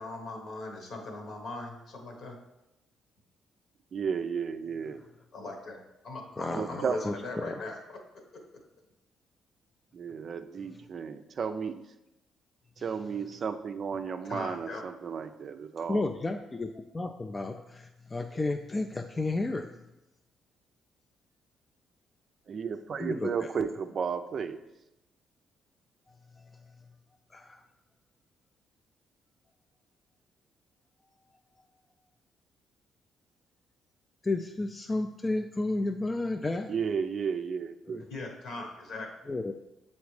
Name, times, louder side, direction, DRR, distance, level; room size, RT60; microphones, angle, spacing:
voice 1, 0.0-2.4 5.3-8.0 8.3-8.6 14.2-14.8 38.1-39.3, left 2 dB, 65° left, 2 dB, 1.2 m, -40 dB
voice 2, 3.9-5.0 6.5-7.0 9.9-11.8 12.8-16.0 22.5-24.6 36.7-38.0, right 6 dB, 50° right, 9 dB, 0.4 m, -33 dB
voice 3, 6.4-7.6 15.9-19.8 23.0-23.5 26.4-26.6 27.3-27.6 34.2-36.7 37.9-38.1 39.3-39.5, left 2 dB, 25° left, 5 dB, 0.3 m, -32 dB
6.9 x 4.2 x 3.2 m, 0.94 s
cardioid pair, 90°, 0 cm